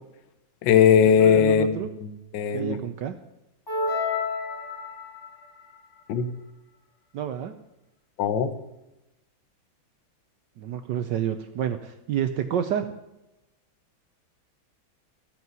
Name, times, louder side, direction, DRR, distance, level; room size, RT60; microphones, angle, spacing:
voice 1, 0.6-1.8 2.3-2.8 6.1-6.3 8.2-8.5, left 8 dB, 65° left, 10 dB, 1.4 m, -19 dB
voice 2, 1.2-1.9 2.5-3.1 7.1-7.5 10.6-12.9, right 9 dB, 70° right, 9 dB, 1.2 m, -29 dB
sound 1, 3.7-5.3, left 4 dB, 35° left, 2.2 m, -29 dB
14.0 x 5.7 x 9.4 m, 0.95 s
omnidirectional pair, 2.2 m